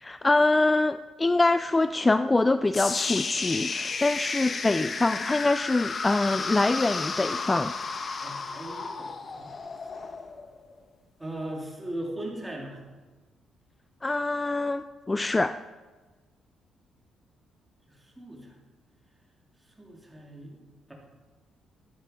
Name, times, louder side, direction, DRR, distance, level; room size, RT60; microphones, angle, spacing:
voice 1, 0.0-7.7 14.0-15.6, left 2 dB, 20° left, 12 dB, 0.4 m, -24 dB
sound 1, 2.7-10.8, left 4 dB, 40° left, 1.1 m, -33 dB
voice 2, 8.2-9.5 11.2-12.8 17.9-18.5 19.8-20.6 20.9-21.0, right 1 dB, 10° right, -2 dB, 3.3 m, -38 dB
12.5 x 9.3 x 5.4 m, 1.3 s
cardioid pair, 90°, 0 cm